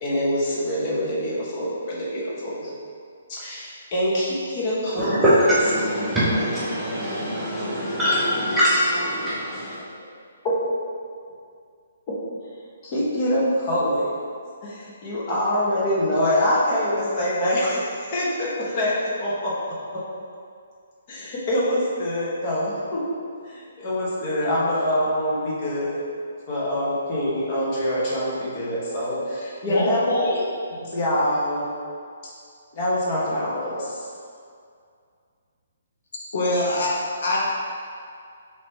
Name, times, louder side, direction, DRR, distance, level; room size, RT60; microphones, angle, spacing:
voice 1, 0.0-2.7 3.3-5.2 12.8-14.1 14.6-18.9 19.2-19.5 21.1-23.0 23.4-26.0 26.5-30.1 30.8-31.7 32.7-34.1, left 1 dB, 30° left, -7 dB, 1.0 m, -25 dB
voice 2, 5.0-9.8, equal, 5° right, -11 dB, 0.7 m, -22 dB
voice 3, 29.6-30.4 30.7-30.8 36.3-36.9 37.2-37.4, left 1 dB, 60° left, -5 dB, 1.0 m, -24 dB
4.8 x 3.3 x 2.9 m, 2.3 s
hypercardioid pair, 165°, 0 cm